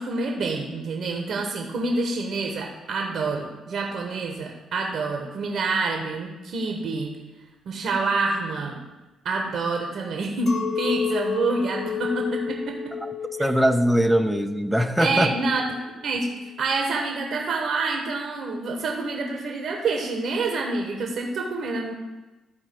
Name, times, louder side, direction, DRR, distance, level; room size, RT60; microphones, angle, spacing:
voice 1, 0.0-7.1 7.6-8.8 9.2-13.0 15.0-15.6 16.0-16.3 16.6-21.9, right 3 dB, 60° right, 1 dB, 1.2 m, -27 dB
Chink clink, 10.5-15.9, left 7 dB, 50° left, 1.0 m, -32 dB
voice 2, 13.4-15.3, equal, 5° right, 6 dB, 0.7 m, -21 dB
12.5 x 4.3 x 4.5 m, 1.1 s
hypercardioid pair, 45°, 0 cm